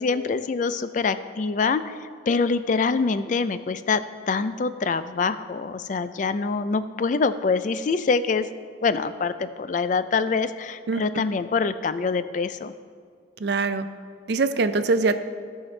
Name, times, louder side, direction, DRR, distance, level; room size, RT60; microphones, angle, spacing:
voice 1, 0.0-2.0 2.3-4.0 4.3-8.5 8.8-12.7, left 4 dB, 40° left, 12 dB, 0.3 m, -25 dB
voice 2, 10.9-11.2 13.4-13.9 14.3-15.2, right 3 dB, 60° right, 10 dB, 0.4 m, -23 dB
16.0 x 5.7 x 3.2 m, 2.1 s
head